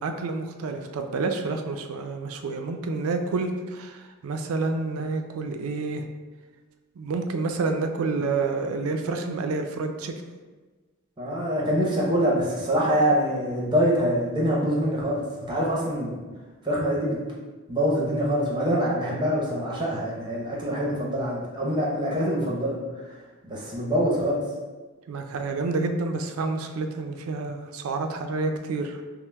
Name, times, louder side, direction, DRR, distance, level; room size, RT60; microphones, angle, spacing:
voice 1, 0.0-6.0 7.0-10.1 25.1-29.0, right 3 dB, 90° right, 6 dB, 0.4 m, -29 dB
voice 2, 11.2-15.2 15.5-16.1 16.6-17.2 17.7-22.8 23.5-24.4, equal, 20° right, -4 dB, 0.7 m, -24 dB
5.5 x 2.0 x 2.2 m, 1.3 s
head